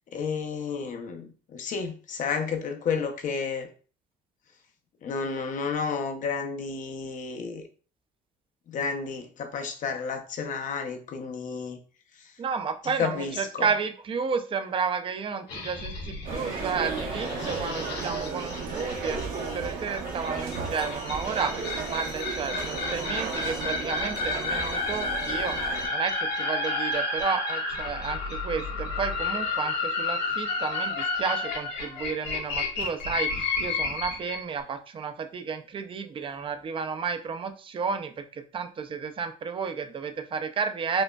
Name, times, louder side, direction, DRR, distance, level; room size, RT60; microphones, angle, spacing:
voice 1, 0.1-1.3 1.5-3.7 5.0-7.6 8.7-11.8 13.0-13.7, left 5 dB, 50° left, 6 dB, 0.6 m, -31 dB
voice 2, 12.4-41.0, right 5 dB, 30° right, 8 dB, 0.4 m, -32 dB
sound 1, 15.5-34.4, left 3 dB, 80° left, 1.5 m, -31 dB
sound 2, 16.2-25.9, right 5 dB, 55° right, 0.8 m, -34 dB
5.0 x 2.1 x 2.2 m, 0.39 s
cardioid pair, 110°, 17 cm